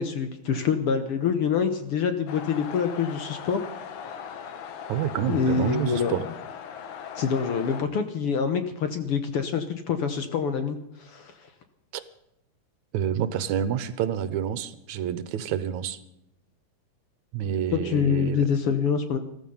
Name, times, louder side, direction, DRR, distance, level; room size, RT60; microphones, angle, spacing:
voice 1, 0.0-3.6 5.3-6.1 7.2-11.3 17.7-19.2, left 6 dB, 60° left, 8 dB, 1.7 m, -26 dB
sound 1, 2.3-7.8, left 8 dB, 80° left, 2.8 m, -39 dB
voice 2, 4.9-6.2 11.9-12.0 12.9-16.0 17.3-18.4, right 9 dB, 75° right, 14 dB, 2.2 m, -28 dB
14.5 x 14.5 x 5.5 m, 0.84 s
omnidirectional pair, 3.5 m